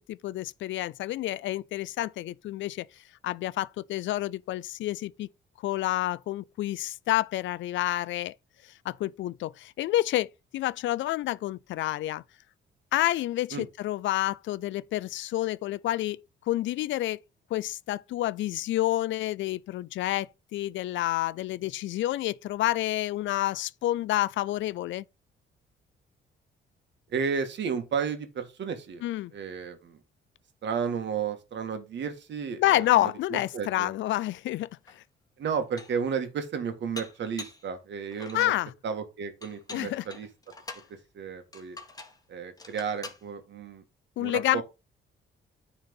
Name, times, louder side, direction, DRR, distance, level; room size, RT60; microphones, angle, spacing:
voice 1, 0.0-2.9 3.2-5.3 5.6-8.3 8.8-12.2 12.9-16.2 16.5-17.2 17.5-25.0 29.0-29.3 32.6-34.7 35.0-35.1 38.3-38.7 39.7-40.0 44.2-44.6, left 15 dB, 75° left, 0.4 m, -29 dB
voice 2, 27.1-29.0 29.3-30.0 30.6-33.9 35.4-38.5 38.8-40.3 40.9-41.8 42.3-43.8 44.2-44.6, right 6 dB, 65° right, 1.9 m, -33 dB
Dishes pots and pans, 34.9-35.0 35.5-36.1 37.0-37.7 38.1-38.6 39.4-40.9 41.5-42.2 42.6-43.2, left 3 dB, 20° left, 1.7 m, -44 dB
9.6 x 4.0 x 5.3 m
cardioid pair, 90°, 20 cm